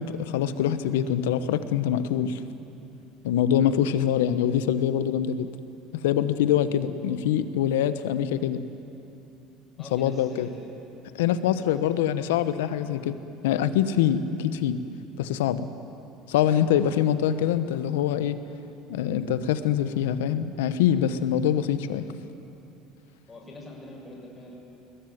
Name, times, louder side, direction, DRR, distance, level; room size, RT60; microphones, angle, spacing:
voice 1, 0.0-2.4 3.2-5.5 6.0-8.6 9.9-10.5 11.1-13.1 13.4-14.8 15.2-15.7 16.3-18.4 18.9-22.0, left 10 dB, 85° left, 12 dB, 1.1 m, -24 dB
voice 2, 9.8-10.5 11.5-11.9 23.3-24.5, left 1 dB, 25° left, -2 dB, 7.2 m, -44 dB
21.5 x 21.0 x 9.5 m, 2.8 s
hypercardioid pair, 85°, 0 cm